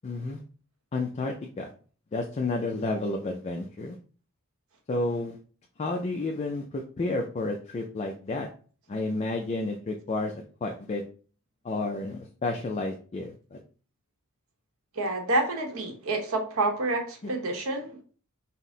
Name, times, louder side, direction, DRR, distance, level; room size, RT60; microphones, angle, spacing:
voice 1, 0.0-0.4 0.9-1.7 2.1-4.0 4.9-5.4 5.8-8.5 8.9-10.3 10.6-11.0 11.6-13.6, left 2 dB, 30° left, 2 dB, 0.3 m, -31 dB
voice 2, 15.0-18.0, right 2 dB, 65° right, 3 dB, 0.9 m, -28 dB
4.2 x 2.0 x 3.7 m, 0.41 s
head